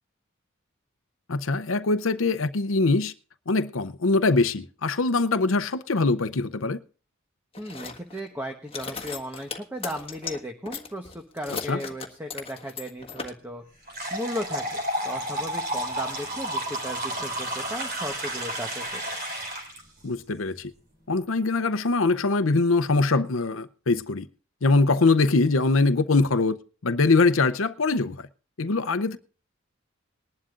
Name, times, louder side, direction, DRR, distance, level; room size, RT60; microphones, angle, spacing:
voice 1, 1.3-3.1 3.5-6.8 11.7-11.8 20.0-20.7 21.1-24.3 24.6-26.6 26.8-28.2 28.6-29.2, left 3 dB, 70° left, 0.7 m, -23 dB
sound 1, 7.5-8.3 8.7-10.4 10.7-13.3, left 5 dB, 25° left, 1.5 m, -37 dB
voice 2, 7.6-13.6 14.1-19.0, equal, 10° right, 1.1 m, -36 dB
sound 2, 13.9-19.8, right 1 dB, 45° right, 3.3 m, -31 dB
20.5 x 11.5 x 2.5 m
head